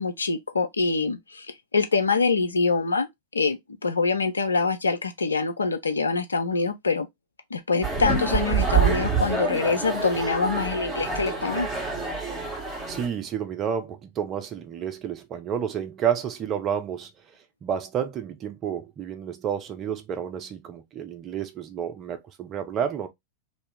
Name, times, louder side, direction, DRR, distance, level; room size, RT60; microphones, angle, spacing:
voice 1, 0.0-1.5 1.7-3.1 3.3-7.1 7.5-11.7, left 4 dB, 75° left, 0.5 m, -25 dB
sound 1, 7.8-13.1, right 5 dB, 10° right, 1.5 m, -26 dB
voice 2, 12.9-17.1 17.6-23.1, right 8 dB, 30° right, 0.7 m, -30 dB
2.8 x 2.7 x 3.3 m
figure-of-eight pair, 90°, 0 cm